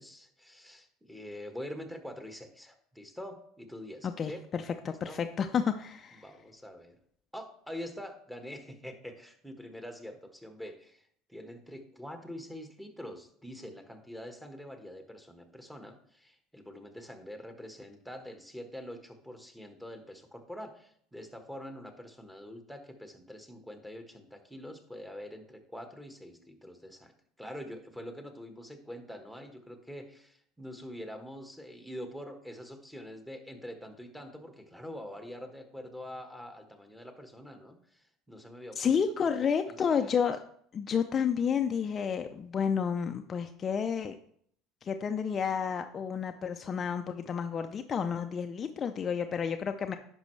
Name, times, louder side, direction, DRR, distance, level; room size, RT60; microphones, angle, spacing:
voice 1, 0.0-4.4 4.8-5.2 6.2-7.0 7.3-27.1 27.4-39.3 39.7-40.1, equal, 5° right, 5 dB, 1.4 m, -45 dB
voice 2, 4.0-6.3 38.8-40.4 40.7-44.1 44.8-50.0, left 7 dB, 35° left, 6 dB, 0.5 m, -30 dB
10.5 x 5.3 x 3.2 m, 0.64 s
hypercardioid pair, 75°, 0 cm